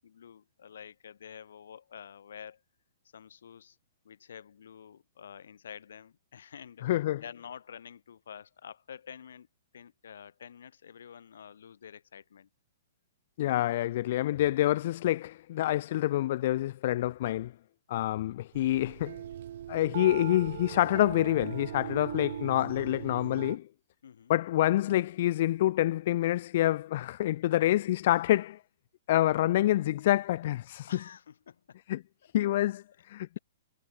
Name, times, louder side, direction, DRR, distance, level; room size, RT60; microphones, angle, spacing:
voice 1, 0.0-2.6 3.1-3.8 4.0-6.9 7.2-9.5 9.7-12.5 24.0-24.3 30.9-31.8, left 8 dB, 75° left, 7.7 m, -48 dB
voice 2, 6.8-7.2 13.4-17.5 17.9-19.2 19.7-23.7 24.3-28.6 29.1-30.9 31.9-32.0 32.3-33.4, left 14 dB, 55° left, 0.9 m, -27 dB
sound 1, 18.5-23.6, right 11 dB, 60° right, 3.8 m, -40 dB
hypercardioid pair, 130°, 0 cm